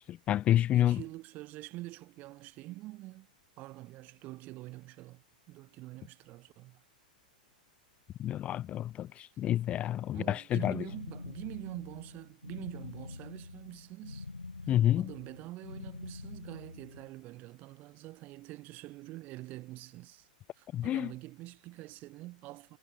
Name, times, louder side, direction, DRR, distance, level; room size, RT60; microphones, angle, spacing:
voice 1, 0.0-1.0 8.2-10.7 14.7-15.1 20.7-21.1, left 12 dB, 25° left, 0.3 m, -29 dB
voice 2, 0.7-3.3 3.6-6.8 10.1-14.3 14.6-20.3 20.5-22.8, right 19 dB, 40° right, 4.1 m, -46 dB
sound 1, 10.8-17.1, left 3 dB, 90° left, 5.2 m, -46 dB
figure-of-eight pair, 105°, 5 cm